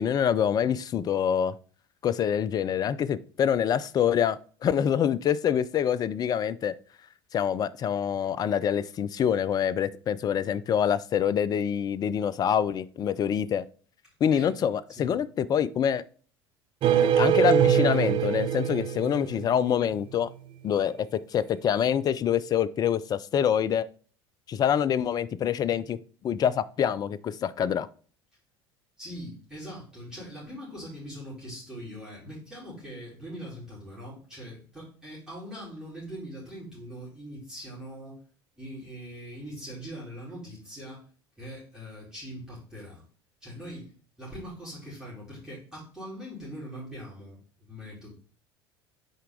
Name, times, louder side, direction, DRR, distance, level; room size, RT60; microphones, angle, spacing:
voice 1, 0.0-1.6 2.0-6.7 7.3-13.7 14.2-16.0 17.2-20.3 20.6-23.9 24.5-27.9, left 8 dB, 30° left, 17 dB, 0.4 m, -26 dB
sound 1, 16.8-19.9, right 9 dB, 40° right, 0.5 m, -23 dB
voice 2, 29.0-38.2 38.5-41.0 41.4-43.0 43.4-43.9 44.2-48.1, equal, 5° right, -9 dB, 3.5 m, -42 dB
6.4 x 4.5 x 3.8 m, 0.42 s
figure-of-eight pair, 70°, 13 cm